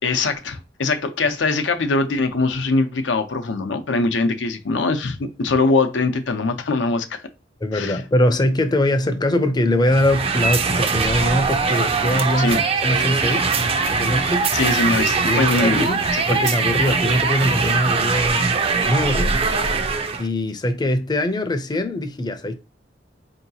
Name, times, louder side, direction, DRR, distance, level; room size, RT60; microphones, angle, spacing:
voice 1, 0.0-7.2 7.7-8.0 12.4-12.6 14.5-16.5, left 3 dB, 80° left, 0.6 m, -22 dB
voice 2, 7.6-12.6 12.8-13.5 13.9-14.5 15.3-16.0 16.3-18.5 18.8-19.3 20.2-22.6, left 1 dB, 25° left, 0.5 m, -22 dB
sound 1, 9.9-20.3, right 4 dB, 30° right, 0.4 m, -21 dB
4.6 x 2.8 x 2.7 m
head